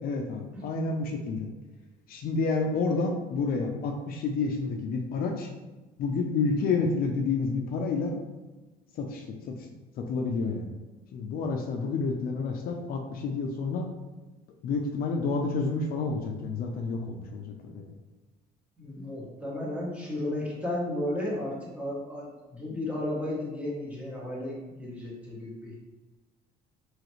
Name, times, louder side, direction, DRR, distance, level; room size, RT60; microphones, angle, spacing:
voice 1, 0.0-1.5 2.1-5.5 6.0-8.2 8.9-9.7 10.0-10.7 11.1-13.9 14.6-18.0, left 4 dB, 60° left, 3 dB, 0.4 m, -29 dB
voice 2, 18.8-25.8, left 1 dB, 5° right, -5 dB, 1.0 m, -34 dB
3.1 x 2.4 x 3.0 m, 1.2 s
cardioid pair, 110°, 17 cm